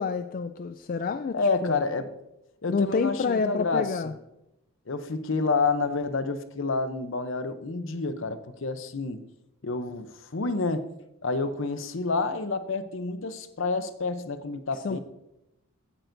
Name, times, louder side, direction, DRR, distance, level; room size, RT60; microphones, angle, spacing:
voice 1, 0.0-1.8 2.7-4.1 14.7-15.0, left 5 dB, 40° left, 9 dB, 0.3 m, -28 dB
voice 2, 1.3-2.1 2.6-3.9 4.9-9.2 9.6-10.9 11.2-15.0, left 3 dB, 60° left, 11 dB, 0.7 m, -29 dB
16.0 x 8.9 x 2.6 m, 0.89 s
head